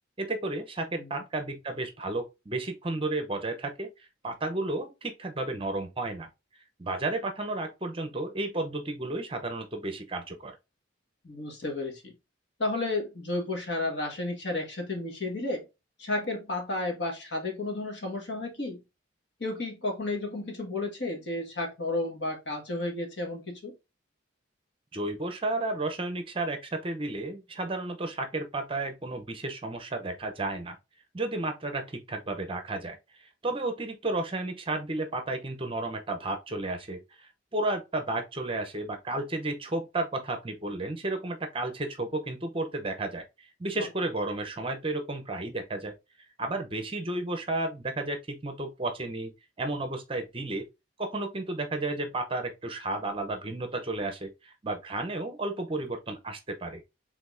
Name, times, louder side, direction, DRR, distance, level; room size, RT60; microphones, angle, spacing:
voice 1, 0.2-6.3 6.8-10.5 24.9-30.7 31.1-45.9 46.4-49.3 49.6-50.7 51.0-56.8, right 2 dB, 25° right, 0.7 m, -32 dB
voice 2, 11.2-12.1 12.6-15.7 16.0-18.8 19.4-23.7, left 2 dB, 60° left, 1.5 m, -32 dB
5.1 x 3.5 x 2.6 m
head